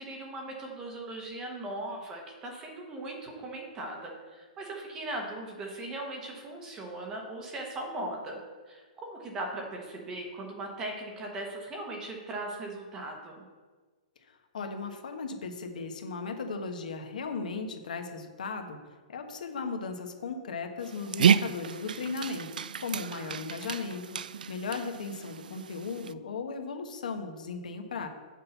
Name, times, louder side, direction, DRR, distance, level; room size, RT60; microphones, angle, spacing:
voice 1, 0.0-8.4 8.7-8.8 9.1-13.4, right 2 dB, 10° right, 1 dB, 0.9 m, -38 dB
voice 2, 14.5-18.8 19.1-22.5 22.8-24.0 24.5-28.1, left 4 dB, 70° left, 5 dB, 1.2 m, -36 dB
Dog, 20.8-26.1, right 7 dB, 90° right, 0.3 m, -30 dB
6.6 x 5.4 x 7.0 m, 1.4 s
hypercardioid pair, 180°, 4 cm